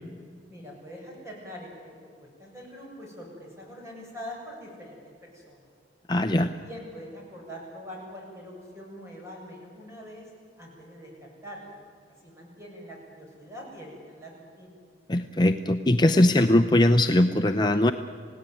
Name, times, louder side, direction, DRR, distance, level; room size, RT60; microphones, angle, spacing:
voice 1, 0.5-1.9 2.2-5.7 6.4-10.2 10.6-11.8 12.2-14.8, equal, 15° right, -2 dB, 7.7 m, -43 dB
voice 2, 6.1-6.5 15.1-17.9, left 1 dB, 25° left, 7 dB, 0.7 m, -20 dB
28.0 x 17.5 x 9.2 m, 2.2 s
head